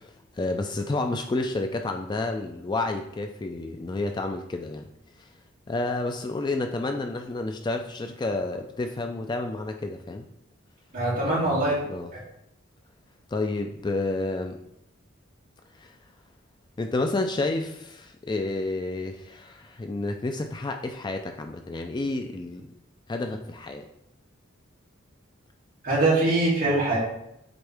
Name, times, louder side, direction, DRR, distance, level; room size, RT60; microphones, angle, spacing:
voice 1, 0.0-4.9 5.2-5.3 5.7-10.3 11.2-12.1 13.3-14.6 15.8-15.9 16.8-22.7 23.1-23.9, left 2 dB, 20° left, 5 dB, 0.3 m, -30 dB
voice 2, 10.9-11.7 12.1-12.2 25.8-27.0, right 2 dB, 45° right, -6 dB, 2.4 m, -23 dB
7.9 x 3.5 x 3.4 m, 0.80 s
head